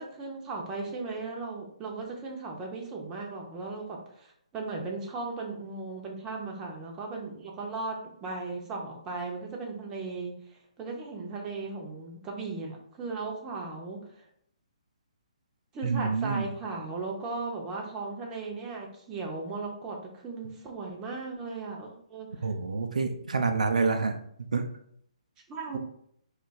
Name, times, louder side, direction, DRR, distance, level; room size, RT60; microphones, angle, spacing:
voice 1, 0.0-10.4 10.8-14.0 15.7-22.5 25.5-25.8, right 3 dB, 20° right, -1 dB, 0.6 m, -37 dB
voice 2, 15.8-16.4 22.4-24.2 24.5-24.7, right 4 dB, 80° right, 5 dB, 0.3 m, -27 dB
2.4 x 2.1 x 3.9 m, 0.69 s
hypercardioid pair, 145°, 4 cm